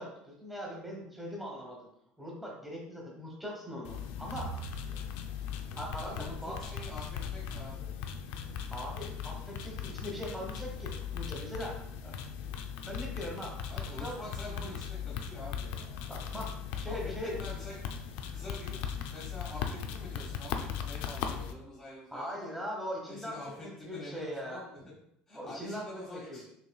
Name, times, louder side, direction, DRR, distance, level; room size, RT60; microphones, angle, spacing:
voice 1, 0.0-1.9 2.2-4.6 4.9-5.0 5.8-6.6 8.7-12.1 12.9-13.6 14.0-14.2 14.6-14.7 16.1-17.4 22.1-24.6 25.4-26.4, equal, ahead, -2 dB, 1.1 m, -41 dB
sound 1, 3.8-21.5, left 7 dB, 75° left, 0.4 m, -38 dB
voice 2, 6.0-7.9 13.7-16.1 16.8-17.8 18.3-18.8 19.1-22.5 23.0-24.9 25.3-26.5, left 1 dB, 25° left, -6 dB, 1.2 m, -46 dB
5.5 x 3.1 x 2.3 m, 0.76 s
cardioid pair, 140°, 3 cm